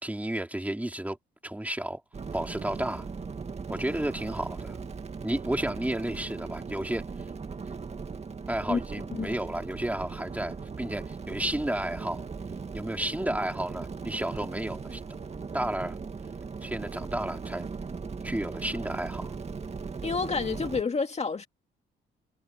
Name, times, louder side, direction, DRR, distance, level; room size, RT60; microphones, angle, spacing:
voice 1, 0.0-1.2 1.4-2.0 2.3-3.1 3.7-4.8 5.2-7.0 8.5-12.2 12.7-15.0 15.5-16.0 16.6-17.7 18.0-19.4, right 1 dB, 5° right, 3.8 m, -32 dB
sound 1, 2.1-20.8, right 5 dB, 35° right, 2.2 m, -38 dB
voice 2, 20.0-21.5, left 4 dB, 35° left, 2.2 m, -29 dB
cardioid pair, 90°, 20 cm